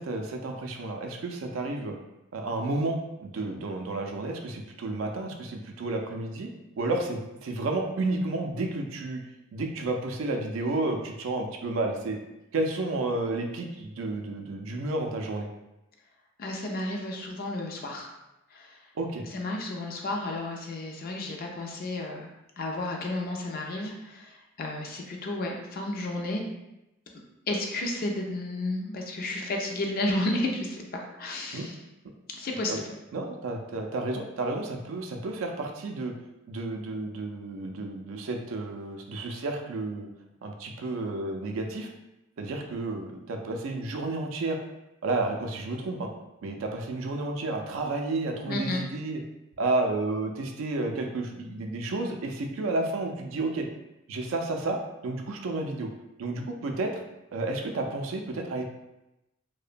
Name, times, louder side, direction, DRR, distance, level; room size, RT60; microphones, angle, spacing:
voice 1, 0.0-1.9 2.3-6.5 6.8-9.2 9.5-12.2 12.5-15.5 19.0-19.3 31.5-31.7 32.7-32.8 33.1-36.1 36.5-40.1 40.4-41.9 42.4-44.6 45.0-46.1 46.4-49.2 49.6-53.7 54.1-55.9 56.2-57.0 57.3-58.6, right 2 dB, 75° right, 3 dB, 0.4 m, -31 dB
voice 2, 16.4-18.1 18.5-18.7 19.3-22.3 22.6-26.4 27.5-31.7 32.4-32.9 48.5-48.8, left 2 dB, 45° left, 1 dB, 0.4 m, -32 dB
2.8 x 2.1 x 2.5 m, 0.93 s
head